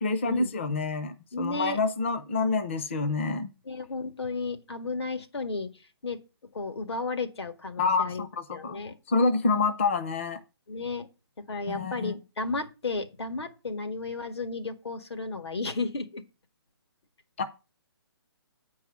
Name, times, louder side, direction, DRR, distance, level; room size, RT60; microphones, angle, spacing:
voice 1, 0.0-3.5 7.8-8.8 9.1-10.4 11.7-12.1 17.4-17.5, left 3 dB, 30° left, 0.6 m, -27 dB
voice 2, 1.3-1.8 3.7-5.7 6.0-6.2 6.5-8.3 8.5-9.0 10.7-11.1 11.4-16.2, left 3 dB, 80° left, 1.9 m, -33 dB
8.9 x 4.7 x 7.1 m
hypercardioid pair, 175°, 13 cm